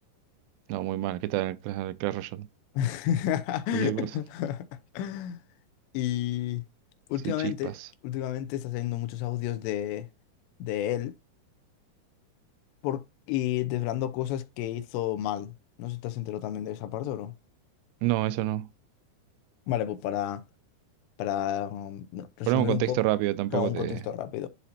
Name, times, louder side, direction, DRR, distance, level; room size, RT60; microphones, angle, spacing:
voice 1, 0.7-2.5 3.7-4.1 7.3-7.9 18.0-18.7 22.5-24.0, right 16 dB, 85° right, 2.7 m, -28 dB
voice 2, 2.8-4.7 4.9-5.4 5.9-6.6 7.1-7.7 8.0-10.1 10.6-11.1 12.8-15.5 15.8-17.3 19.7-20.4 21.2-23.0 23.5-24.5, left 12 dB, 85° left, 2.9 m, -31 dB
11.5 x 4.2 x 2.8 m
omnidirectional pair, 4.9 m